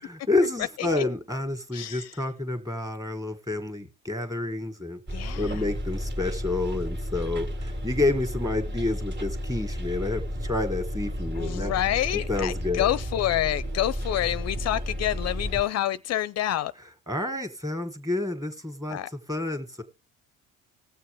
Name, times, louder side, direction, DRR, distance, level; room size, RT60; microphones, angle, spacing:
voice 1, 0.0-5.0 5.4-11.7 12.3-12.9 17.1-19.0 19.3-19.8, left 2 dB, 10° right, 1.9 m, -29 dB
voice 2, 1.7-2.2 5.1-5.7 11.3-16.7 18.9-19.1, left 13 dB, 50° left, 0.4 m, -28 dB
Bus, 5.1-15.6, equal, 35° right, 1.7 m, -32 dB
19.0 x 6.8 x 3.4 m
supercardioid pair, 90°, 33 cm